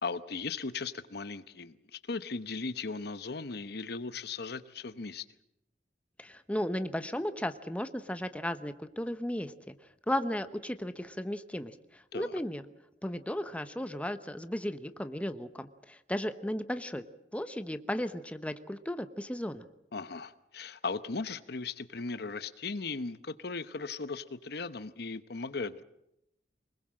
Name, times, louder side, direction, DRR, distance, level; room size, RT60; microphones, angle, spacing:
voice 1, 0.0-5.2 12.1-12.4 19.9-25.8, left 4 dB, 65° left, 13 dB, 1.0 m, -37 dB
voice 2, 6.2-9.7 10.1-12.6 13.0-17.0 17.3-19.7, left 1 dB, 10° left, 10 dB, 1.0 m, -35 dB
24.5 x 21.0 x 7.6 m, 0.83 s
head